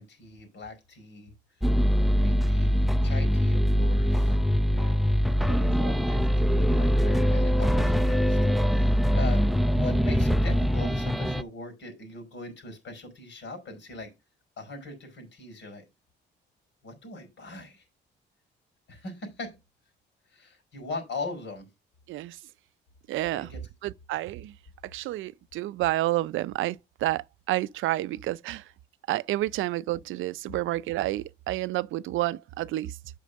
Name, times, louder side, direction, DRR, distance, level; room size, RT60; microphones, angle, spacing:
voice 1, 0.0-1.3 2.2-4.4 4.7-14.1 14.6-15.8 16.8-17.8 18.9-19.6 20.3-21.7 23.3-23.6, left 3 dB, 65° left, 4.8 m, -41 dB
sound 1, 1.6-11.4, equal, ahead, 0.5 m, -23 dB
voice 2, 23.1-23.5 23.8-24.5 24.9-28.6 29.1-33.0, right 16 dB, 80° right, 0.5 m, -29 dB
8.4 x 5.6 x 5.1 m
cardioid pair, 90°, 20 cm